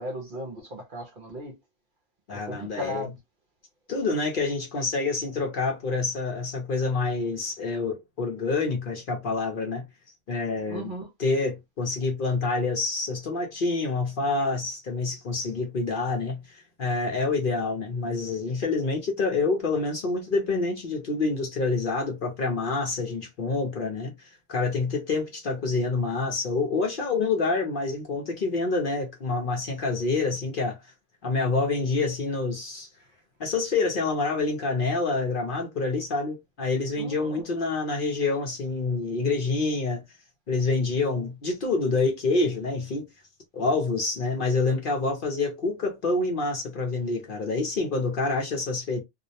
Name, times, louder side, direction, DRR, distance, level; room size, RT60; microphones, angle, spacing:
voice 1, 0.0-1.5 2.3-3.1 10.7-11.1 37.0-37.4, equal, 55° right, 0.6 m, -36 dB
voice 2, 2.3-3.0 3.9-9.8 10.3-10.9 11.2-24.1 24.5-30.8 31.2-32.9 33.4-40.0 40.5-43.1 43.5-49.0, left 3 dB, 50° left, 0.7 m, -27 dB
2.5 x 2.0 x 2.7 m
omnidirectional pair, 1.3 m